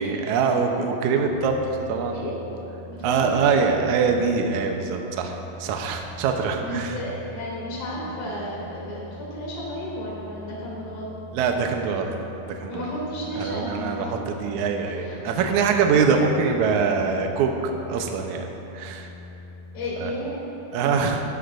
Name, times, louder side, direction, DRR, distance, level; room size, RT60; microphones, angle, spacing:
voice 1, 0.0-2.3 3.0-7.0 11.3-12.1 12.4-12.9 13.3-19.1 20.0-20.1 20.7-21.3, right 5 dB, 85° right, 3 dB, 1.7 m, -24 dB
sound 1, 1.2-20.1, left 1 dB, 50° right, 4.3 m, -42 dB
voice 2, 2.0-2.3 2.8-3.6 6.6-11.1 12.7-14.2 14.9-15.4 15.8-16.0 19.7-21.0, equal, 40° left, -6 dB, 3.7 m, -33 dB
17.0 x 13.0 x 2.6 m, 3.0 s
omnidirectional pair, 4.6 m